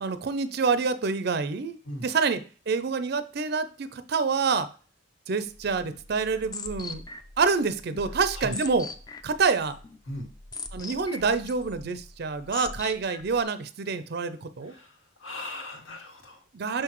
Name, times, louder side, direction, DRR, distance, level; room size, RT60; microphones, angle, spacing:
voice 1, 0.0-2.4 2.7-4.7 5.3-7.0 7.4-8.9 9.2-9.8 10.7-14.7 16.5-16.8, right 4 dB, 50° right, 12 dB, 0.4 m, -27 dB
sound 1, 5.5-13.4, left 3 dB, 20° left, 0.4 m, -41 dB
voice 2, 14.6-16.4, left 1 dB, 70° left, 0 dB, 1.9 m, -38 dB
6.5 x 5.8 x 3.0 m, 0.39 s
head